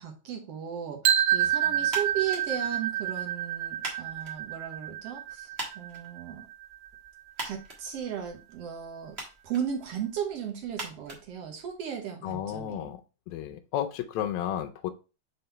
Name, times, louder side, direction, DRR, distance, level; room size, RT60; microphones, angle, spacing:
voice 1, 0.0-5.5 5.8-6.5 7.4-9.2 9.4-12.9, right 8 dB, 65° right, 3 dB, 1.8 m, -36 dB
sound 1, 1.0-7.0, right 11 dB, 80° right, 1.8 m, -29 dB
voice 2, 1.4-1.9 12.2-13.0 13.3-14.9, left 10 dB, 75° left, 5 dB, 1.9 m, -33 dB
sound 2, 1.8-12.1, right 2 dB, 30° right, 1.2 m, -44 dB
5.5 x 3.9 x 4.4 m, 0.31 s
omnidirectional pair, 3.4 m